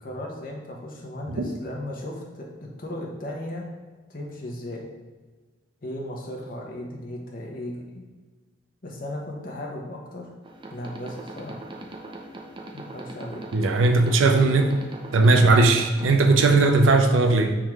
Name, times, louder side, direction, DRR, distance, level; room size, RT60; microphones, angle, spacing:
voice 1, 0.0-3.6 4.1-4.8 5.8-8.0 8.8-10.3 10.7-11.6 12.7-13.4, left 1 dB, 45° left, -1 dB, 0.8 m, -36 dB
sound 1, 10.4-17.0, right 2 dB, 25° right, 0.4 m, -40 dB
voice 2, 13.5-14.7 15.1-17.6, right 3 dB, 85° right, 5 dB, 0.5 m, -18 dB
3.6 x 3.1 x 4.7 m, 1.3 s
head